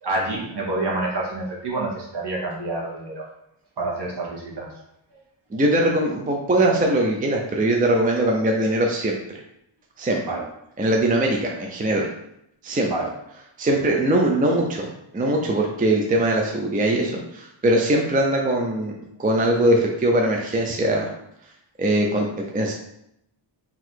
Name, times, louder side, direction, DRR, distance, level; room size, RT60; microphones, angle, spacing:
voice 1, 0.0-3.3 3.8-4.7 10.3-10.4 12.9-13.1, right 2 dB, 55° right, -3 dB, 1.3 m, -27 dB
voice 2, 5.5-9.2 10.0-10.2 10.8-12.1 12.6-12.9 13.6-21.1 21.8-22.3 22.5-22.7, right 1 dB, 20° right, 0 dB, 0.4 m, -21 dB
4.0 x 2.6 x 4.5 m, 0.78 s
wide cardioid pair, 165°, 48 cm